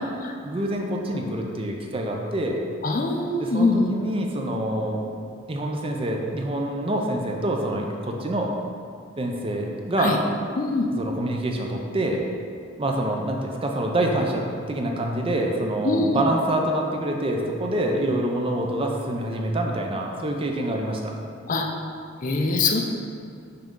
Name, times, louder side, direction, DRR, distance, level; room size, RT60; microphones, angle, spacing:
voice 1, 0.4-2.6 3.4-5.1 5.5-8.5 9.2-10.2 10.9-12.2 12.8-21.1, right 1 dB, 30° right, 1 dB, 0.5 m, -26 dB
voice 2, 2.8-3.9 10.0-10.2 10.6-10.9 15.8-16.2 21.5-21.7 22.2-22.8, left 3 dB, 45° left, 2 dB, 0.5 m, -23 dB
5.7 x 5.1 x 3.7 m, 2.3 s
head